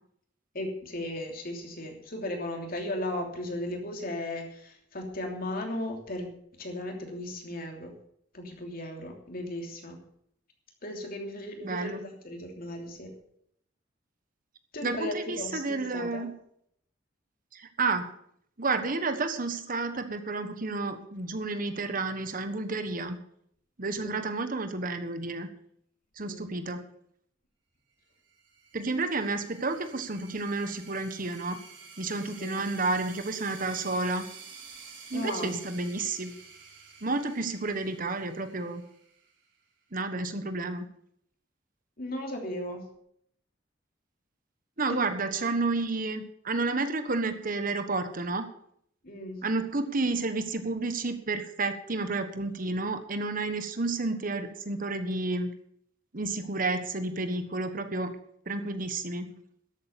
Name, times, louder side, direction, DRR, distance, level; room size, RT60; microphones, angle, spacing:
voice 1, 0.5-8.0 8.3-10.0 10.8-13.1 14.7-16.3 24.0-24.3 26.2-26.5 32.4-32.7 35.1-35.6 42.0-42.8 44.9-45.0 49.0-49.4, left 1 dB, 50° left, 2 dB, 3.0 m, -36 dB
voice 2, 11.6-12.0 14.8-16.3 17.5-18.1 18.6-23.2 23.8-25.5 26.2-26.9 28.7-31.6 32.0-34.2 35.1-36.3 37.0-38.8 39.9-40.9 44.8-48.4 49.4-55.5 56.1-58.1 58.5-59.4, right 3 dB, 50° right, 9 dB, 1.3 m, -31 dB
sound 1, 28.3-39.5, right 5 dB, 80° right, 4.6 m, -50 dB
13.0 x 8.7 x 7.0 m, 0.68 s
head